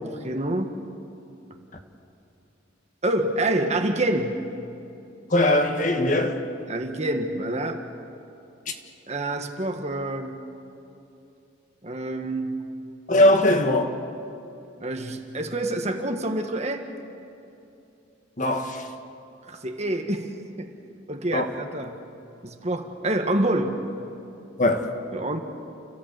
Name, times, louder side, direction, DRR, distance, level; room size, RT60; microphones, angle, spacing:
voice 1, 0.2-0.7 3.0-4.4 6.7-7.8 9.1-10.4 11.8-12.6 14.8-16.8 19.5-20.3 20.6-20.7 21.1-22.0 22.4-23.8 25.1-25.4, right 1 dB, 35° right, 5 dB, 1.5 m, -27 dB
voice 2, 5.3-6.4 13.1-13.9 18.4-18.8 21.3-21.5 24.6-24.9, left 1 dB, 40° left, 5 dB, 1.6 m, -20 dB
29.5 x 14.5 x 8.2 m, 2.7 s
head